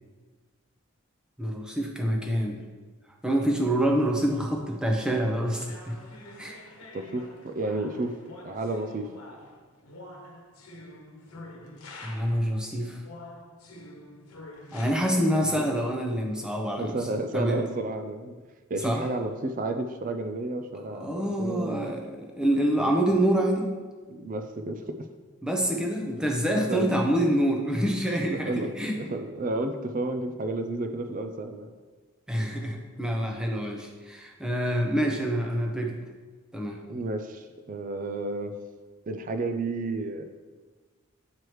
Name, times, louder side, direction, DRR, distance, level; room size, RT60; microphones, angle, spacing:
voice 1, 1.4-2.6 3.2-6.0 6.4-6.6 12.0-13.0 14.7-16.9 17.3-17.6 18.8-19.0 20.9-23.7 25.4-29.0 32.3-36.0 36.5-36.8, equal, 5° right, 1 dB, 0.7 m, -26 dB
sound 1, 5.5-12.5 13.0-14.9, left 1 dB, 85° left, 1.1 m, -47 dB
voice 2, 6.9-8.1 8.4-9.1 15.5-15.7 16.8-18.3 18.7-21.9 24.1-24.8 26.7-27.0 28.3-31.7 36.9-38.5 39.1-40.2, right 2 dB, 40° right, 7 dB, 0.4 m, -31 dB
9.3 x 4.7 x 3.1 m, 1.4 s
head